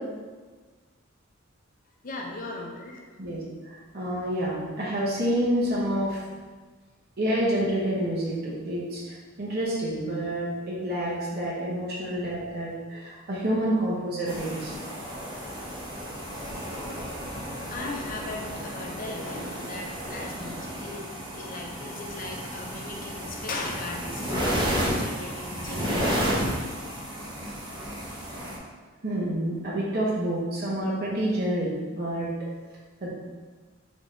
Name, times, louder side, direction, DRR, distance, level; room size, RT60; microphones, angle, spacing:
voice 1, 2.0-3.1 17.3-26.5, left 2 dB, 45° left, 0 dB, 0.7 m, -38 dB
voice 2, 3.2-6.2 7.2-14.7 16.7-16.8 29.0-31.7 32.0-32.3 33.0-33.1, right 1 dB, 50° right, -6 dB, 0.9 m, -28 dB
sound 1, 14.2-28.6, equal, 25° right, 0.9 m, -32 dB
3.6 x 3.4 x 3.9 m, 1.4 s
head